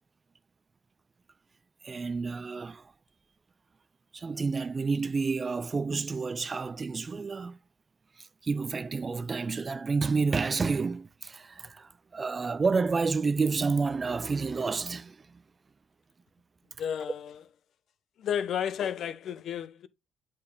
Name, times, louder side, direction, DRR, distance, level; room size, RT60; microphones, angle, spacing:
voice 1, 1.8-2.9 4.1-7.6 8.2-15.4, right 4 dB, 35° right, 0.4 m, -30 dB
voice 2, 16.8-17.4 18.2-19.9, left 9 dB, 60° left, 0.7 m, -32 dB
8.4 x 4.4 x 3.3 m
supercardioid pair, 65°, 0 cm